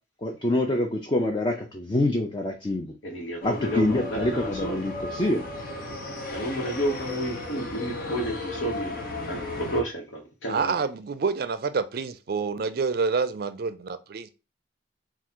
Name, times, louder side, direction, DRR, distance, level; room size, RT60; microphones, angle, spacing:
voice 1, 0.2-2.9 3.4-5.4, left 1 dB, 25° left, 0.5 m, -26 dB
voice 2, 3.0-4.9 6.3-9.0 9.3-10.8, right 1 dB, 90° left, 1.2 m, -31 dB
sound 1, 3.4-9.8, left 2 dB, 50° left, 0.8 m, -35 dB
voice 3, 10.5-14.3, right 5 dB, 50° right, 0.4 m, -27 dB
3.7 x 2.4 x 4.4 m
head